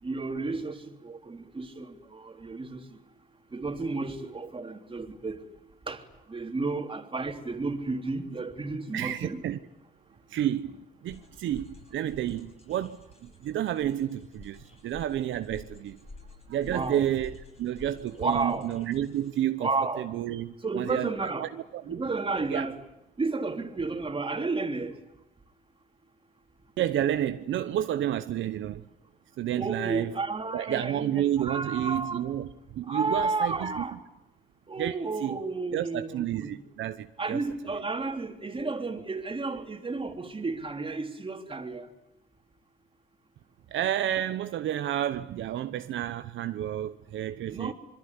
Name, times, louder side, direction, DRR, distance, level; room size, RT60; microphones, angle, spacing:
voice 1, 0.0-3.0 3.5-5.4 5.9-9.4 16.7-17.0 18.1-18.7 19.6-20.1 20.6-21.5 21.9-22.8 23.2-25.0 29.5-32.3 32.8-34.0 34.7-36.6 37.2-41.9 47.5-47.7, right 3 dB, 25° right, 3.3 m, -32 dB
voice 2, 8.9-9.6 10.3-16.0 16.5-19.7 20.0-21.1 21.4-22.0 22.5-22.6 26.8-28.8 29.4-30.1 30.5-33.7 34.8-35.4 35.7-37.4 37.7-37.8 43.7-47.7, right 11 dB, 75° right, 1.0 m, -30 dB
sound 1, 11.1-19.4, left 3 dB, 30° left, 7.8 m, -50 dB
26.0 x 22.5 x 9.8 m
cardioid pair, 90°, 20 cm